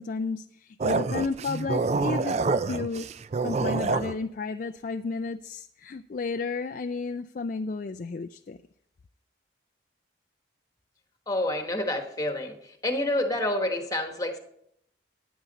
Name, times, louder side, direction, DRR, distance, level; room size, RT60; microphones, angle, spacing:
voice 1, 0.0-2.4 2.7-3.1 3.4-8.6, left 4 dB, 45° left, 7 dB, 0.3 m, -32 dB
sound 1, 0.8-4.2, right 4 dB, 35° right, 0.3 m, -27 dB
voice 2, 11.3-12.6 12.8-14.4, left 1 dB, 20° left, 5 dB, 1.3 m, -28 dB
14.5 x 9.5 x 4.0 m, 0.72 s
head